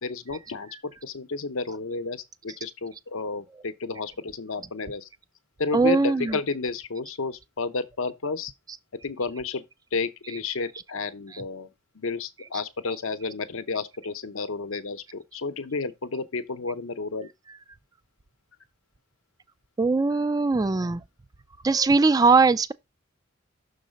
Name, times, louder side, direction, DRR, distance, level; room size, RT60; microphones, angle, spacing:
voice 1, 0.0-5.1 5.6-8.5 9.0-9.6 9.9-11.7 11.9-17.3 20.1-20.4, left 4 dB, 75° left, 0.7 m, -31 dB
voice 2, 5.7-6.4 19.8-21.0 21.6-22.7, right 4 dB, 20° right, 0.3 m, -20 dB
6.4 x 4.0 x 5.1 m
head